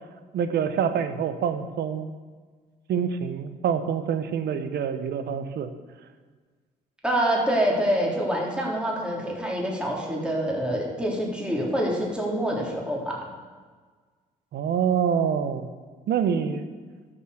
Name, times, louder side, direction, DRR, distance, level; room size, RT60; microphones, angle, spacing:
voice 1, 0.3-2.1 2.9-5.7 14.5-15.7 16.1-16.7, right 7 dB, 65° right, 10 dB, 1.0 m, -26 dB
voice 2, 7.0-13.3, equal, 5° right, -2 dB, 3.6 m, -26 dB
12.5 x 6.2 x 6.6 m, 1.5 s
supercardioid pair, 55°, 18 cm